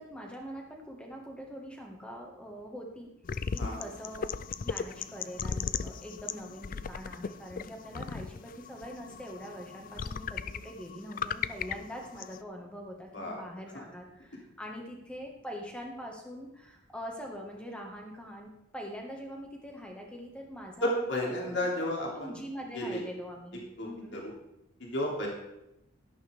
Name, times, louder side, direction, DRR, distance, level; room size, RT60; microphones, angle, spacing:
voice 1, 0.0-3.1 3.5-4.3 4.6-21.9 22.2-24.3, equal, 5° left, 0 dB, 1.7 m, -43 dB
sound 1, 3.2-12.4, left 6 dB, 40° left, 0.3 m, -37 dB
voice 2, 20.8-22.3 22.7-23.0 23.8-24.3 24.8-25.3, left 1 dB, 60° left, -2 dB, 3.1 m, -32 dB
12.5 x 11.0 x 3.6 m, 0.86 s
head